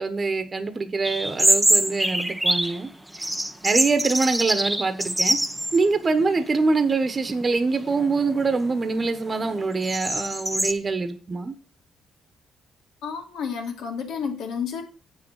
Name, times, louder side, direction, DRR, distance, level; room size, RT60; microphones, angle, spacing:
voice 1, 0.0-2.9 3.6-5.4 5.7-11.5, right 4 dB, 35° right, 1.3 m, -24 dB
sound 1, 1.0-2.8 3.1-5.8 6.2-6.3 7.0-7.4 7.9-10.7, right 1 dB, 5° right, 0.8 m, -24 dB
voice 2, 13.0-14.8, left 6 dB, 80° left, 2.4 m, -30 dB
8.1 x 6.3 x 6.5 m
cardioid pair, 90°, 0 cm